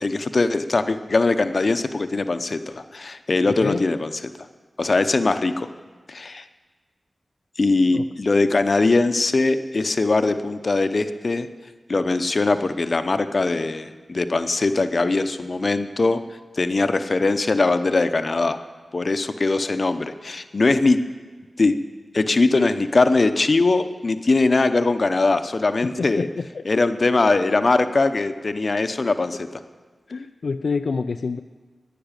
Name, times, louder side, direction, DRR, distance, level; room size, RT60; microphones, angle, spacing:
voice 1, 0.0-4.1 4.8-5.7 6.1-6.4 7.6-11.5 11.9-16.2 16.5-18.6 18.9-21.0 21.6-21.8 22.1-26.3 26.6-29.5, left 3 dB, 50° left, 10 dB, 0.8 m, -21 dB
voice 2, 25.8-26.9 27.4-27.5 30.1-31.4, left 4 dB, 75° left, 6 dB, 0.4 m, -28 dB
12.0 x 9.4 x 9.0 m, 1.4 s
wide cardioid pair, 80°, 0 cm